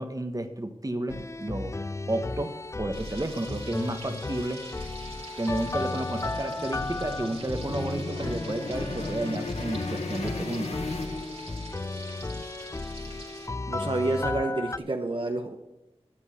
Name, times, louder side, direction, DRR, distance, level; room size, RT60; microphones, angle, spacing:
voice 1, 0.0-1.7 2.1-4.7 5.4-10.8, right 1 dB, 35° right, 7 dB, 1.2 m, -32 dB
sound 1, 1.1-14.8, left 3 dB, 25° left, 0.4 m, -35 dB
Frying (food), 2.9-13.5, right 2 dB, 70° right, 2.7 m, -45 dB
sound 2, 5.1-11.9, left 3 dB, 80° left, 0.9 m, -37 dB
voice 2, 13.7-15.6, right 2 dB, 55° right, 4 dB, 1.0 m, -29 dB
11.5 x 7.8 x 7.4 m, 0.93 s
wide cardioid pair, 60°, 11 cm